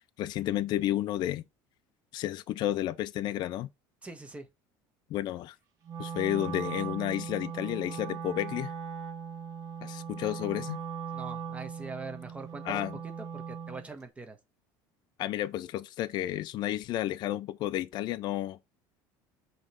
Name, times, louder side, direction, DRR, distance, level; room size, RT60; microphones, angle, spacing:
voice 1, 0.2-1.4 2.1-3.7 5.1-5.6 6.0-8.7 9.8-10.8 12.6-13.0 15.2-18.6, left 13 dB, 50° left, 0.5 m, -31 dB
voice 2, 4.0-4.5 11.1-12.9 13.3-14.4, right 3 dB, 15° right, 1.4 m, -42 dB
Wind instrument woodwind instrument, 5.8-13.9, right 7 dB, 40° right, 1.7 m, -39 dB
6.2 x 3.2 x 5.2 m
cardioid pair, 130°, 9 cm